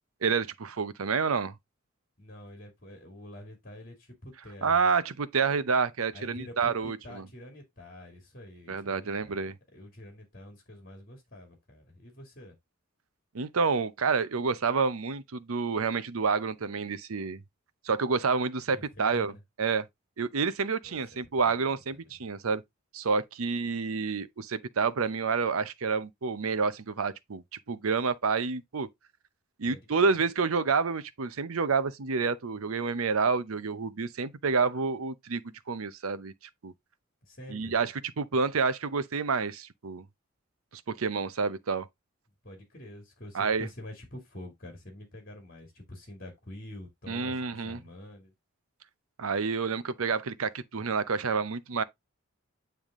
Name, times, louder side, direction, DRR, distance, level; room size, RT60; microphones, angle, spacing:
voice 1, 0.2-1.5 4.6-7.3 8.7-9.5 13.3-17.4 17.8-19.3 19.6-19.9 20.2-22.6 22.9-28.9 29.6-36.3 36.6-36.7 37.5-40.0 40.7-41.9 43.3-43.7 47.1-47.8 49.2-51.8, right 5 dB, 85° right, 0.7 m, -29 dB
voice 2, 2.2-4.8 6.1-9.4 9.7-12.5 18.7-19.4 20.8-21.0 21.4-22.2 29.7-30.2 37.2-37.7 42.4-48.3, left 1 dB, 40° left, 2.4 m, -47 dB
9.1 x 3.5 x 3.6 m
head